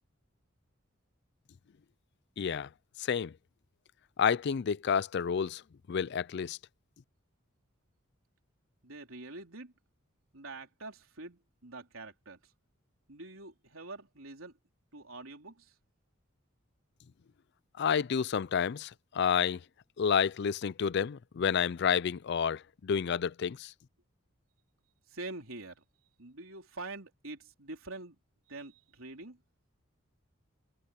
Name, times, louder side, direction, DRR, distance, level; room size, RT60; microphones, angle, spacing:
voice 1, 2.4-2.7 3.0-3.3 4.2-5.6 5.9-6.6 17.8-19.6 20.0-23.7, left 7 dB, 55° left, 0.4 m, -30 dB
voice 2, 8.8-9.7 10.3-12.4 13.1-14.5 14.9-15.7 25.1-25.8 26.2-28.2 28.5-29.4, right 2 dB, 75° right, 3.7 m, -45 dB
head